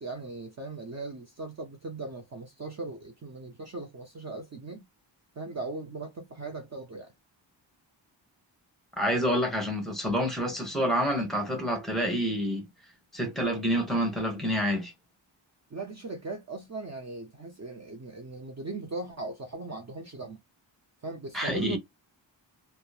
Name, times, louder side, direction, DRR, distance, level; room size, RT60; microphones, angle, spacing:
voice 1, 0.0-4.8 5.4-7.1 15.7-20.4 21.0-21.8, right 3 dB, 35° right, 0.6 m, -39 dB
voice 2, 9.0-12.6 13.1-14.9 21.3-21.8, equal, ahead, 1.1 m, -28 dB
2.9 x 2.1 x 2.4 m
wide cardioid pair, 105°, 46 cm